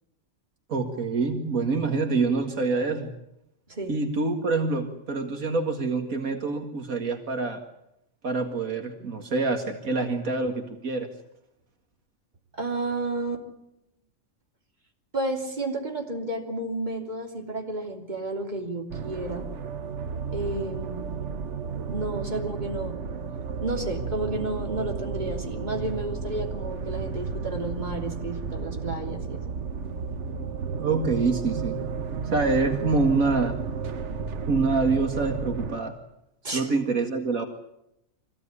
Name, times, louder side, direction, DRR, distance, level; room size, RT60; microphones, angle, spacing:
voice 1, 0.7-3.1 3.9-7.6 8.2-11.1 30.8-31.8 32.3-33.6 34.5-35.9 36.5-37.5, right 3 dB, 85° right, 4 dB, 2.4 m, -26 dB
voice 2, 12.5-13.4 15.1-19.5 20.3-21.1 21.8-23.0 23.6-29.4 36.4-36.7, right 2 dB, 30° right, 2 dB, 3.3 m, -31 dB
sound 1, 18.9-35.8, right 5 dB, 60° right, 1.4 m, -33 dB
24.5 x 16.5 x 9.8 m, 0.83 s
omnidirectional pair, 1.4 m